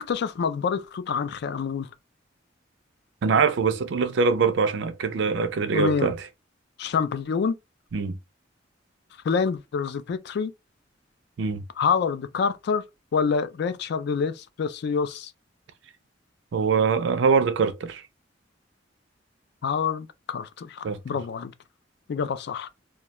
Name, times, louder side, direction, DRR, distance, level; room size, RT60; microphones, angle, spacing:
voice 1, 0.0-1.9 5.7-6.1 6.8-7.6 9.2-10.5 11.8-12.8 13.1-15.3 19.6-21.5 22.1-22.7, left 6 dB, 60° left, 0.3 m, -27 dB
voice 2, 3.2-6.2 7.9-8.2 11.4-11.6 16.5-18.0 20.8-21.0, right 5 dB, 70° right, 0.4 m, -23 dB
2.3 x 2.1 x 2.8 m
head